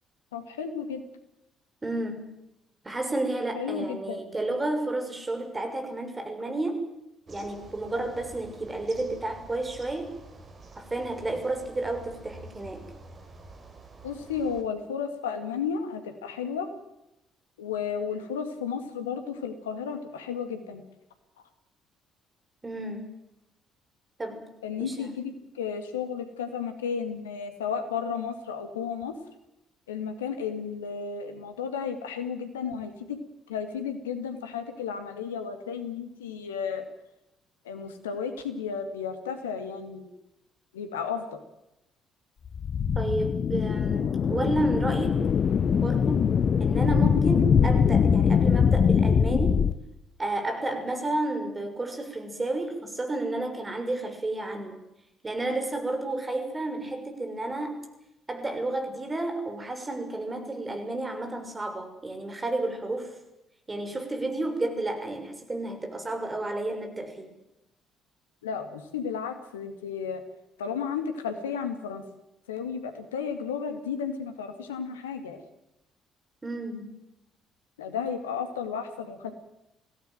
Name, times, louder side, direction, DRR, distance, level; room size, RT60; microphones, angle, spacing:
voice 1, 0.3-1.0 3.5-4.2 14.0-16.7 17.6-20.8 24.6-29.1 29.9-33.2 33.5-36.8 37.6-40.1 40.7-41.4 68.4-70.2 70.6-72.0 72.5-75.4 77.8-79.3, left 6 dB, 80° left, 8 dB, 2.2 m, -33 dB
voice 2, 1.8-2.3 2.8-6.8 7.3-10.1 10.8-12.8 22.6-23.1 24.2-24.5 24.8-25.2 42.9-45.2 45.8-46.3 46.6-49.6 50.2-54.8 55.2-57.8 58.3-63.2 63.7-67.3 76.4-76.9, right 2 dB, 25° right, 6 dB, 6.3 m, -31 dB
sound 1, 7.3-14.6, right 3 dB, 40° right, 4.9 m, -48 dB
sound 2, 42.5-49.7, left 7 dB, 50° left, 0.9 m, -22 dB
21.5 x 17.5 x 9.2 m, 0.89 s
figure-of-eight pair, 45°, 0 cm